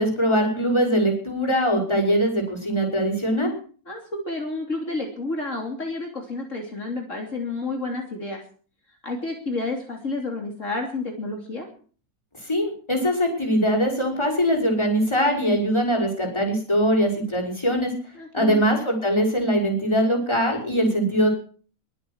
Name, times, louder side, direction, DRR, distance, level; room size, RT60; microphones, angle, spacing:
voice 1, 0.0-3.5 12.4-17.9 18.3-21.3, equal, 20° left, 2 dB, 5.4 m, -22 dB
voice 2, 3.9-8.4 9.0-11.7 18.2-18.6, left 2 dB, 55° left, 1 dB, 3.5 m, -30 dB
22.5 x 8.0 x 8.0 m, 0.43 s
omnidirectional pair, 1.5 m